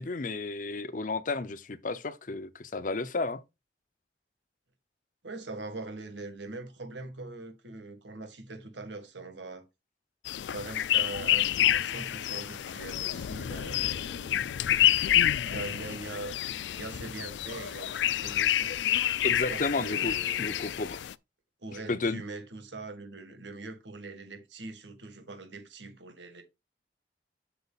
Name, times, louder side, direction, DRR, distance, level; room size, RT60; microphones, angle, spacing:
voice 1, 0.0-3.4 19.2-21.0 21.9-22.2, left 3 dB, 45° left, 0.7 m, -32 dB
voice 2, 5.2-9.7 10.4-14.5 15.4-18.7 19.2-20.6 21.6-26.4, right 3 dB, 90° right, 1.9 m, -42 dB
sound 1, 10.3-21.1, left 12 dB, 80° left, 0.4 m, -28 dB
8.0 x 6.8 x 2.4 m
head